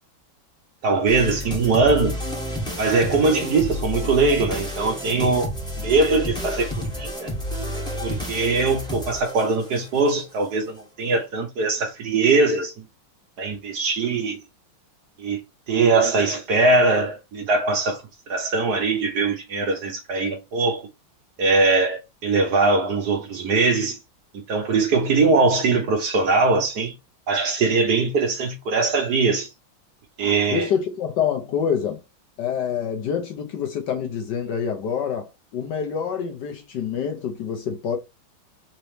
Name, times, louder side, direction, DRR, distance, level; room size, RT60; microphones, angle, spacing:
voice 1, 0.8-2.2 2.8-5.5 5.8-6.7 7.0-7.3 8.0-12.8 13.4-14.4 15.2-15.4 15.7-18.0 18.3-20.9 21.4-24.0 24.5-26.9 27.3-29.5 30.2-30.7, right 3 dB, 60° right, 1.2 m, -21 dB
sound 1, 1.1-10.1, left 1 dB, 5° left, 0.8 m, -30 dB
voice 2, 30.5-32.0 32.4-38.0, left 7 dB, 65° left, 1.2 m, -26 dB
4.1 x 2.9 x 3.2 m
omnidirectional pair, 2.3 m